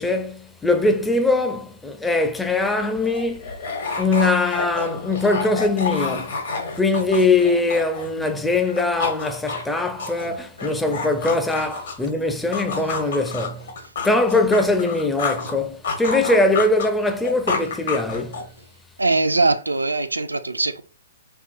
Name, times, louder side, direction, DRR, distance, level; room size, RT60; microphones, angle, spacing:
voice 1, 0.0-3.5 4.0-6.5 6.8-13.7 14.0-18.4, left 2 dB, 5° left, 0.4 m, -21 dB
sound 1, 2.5-2.6 2.8-8.3 8.6-12.1 12.5-15.5 15.8-18.6, left 4 dB, 60° left, 1.1 m, -29 dB
voice 2, 19.0-20.8, right 3 dB, 85° right, 0.3 m, -21 dB
3.5 x 2.8 x 2.4 m
figure-of-eight pair, 115°, 0 cm